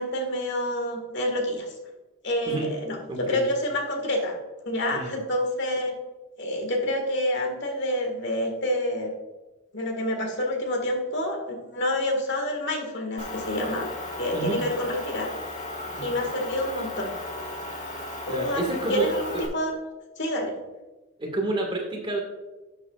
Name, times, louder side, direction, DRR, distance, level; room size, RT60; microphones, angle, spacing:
voice 1, 0.0-1.7 2.2-3.0 3.3-4.4 4.6-5.9 6.4-9.1 9.7-13.9 14.2-15.3 16.0-17.1 18.3-18.6 18.9-19.8 20.2-20.5, left 1 dB, 55° left, 3 dB, 1.8 m, -28 dB
voice 2, 3.1-3.5 4.9-5.1 14.3-14.6 15.9-16.1 18.3-19.4 21.2-22.2, right 1 dB, 25° right, 1 dB, 1.8 m, -29 dB
Motor vehicle (road) / Engine, 13.2-19.5, left 2 dB, 35° left, 1.6 m, -36 dB
11.5 x 8.0 x 2.4 m, 1.1 s
head